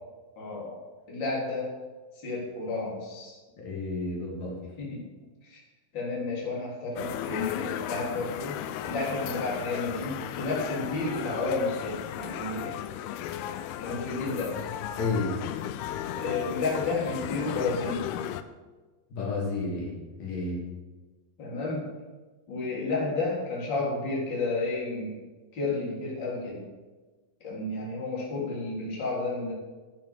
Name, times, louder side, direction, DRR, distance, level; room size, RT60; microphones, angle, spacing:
voice 1, 0.4-0.8 1.1-1.7 2.2-3.4 4.8-5.1 5.4-5.6 5.9-12.8 13.8-14.6 16.1-18.1 21.4-21.8 22.5-25.2 25.5-26.6 27.4-29.5, left 3 dB, 30° left, -5 dB, 4.0 m, -31 dB
voice 2, 3.6-4.6 15.0-15.4 19.1-20.7, left 3 dB, 65° left, -4 dB, 4.6 m, -31 dB
sound 1, 7.0-18.4, left 11 dB, 85° left, 2.5 m, -35 dB
11.5 x 8.8 x 7.4 m, 1.3 s
omnidirectional pair, 4.4 m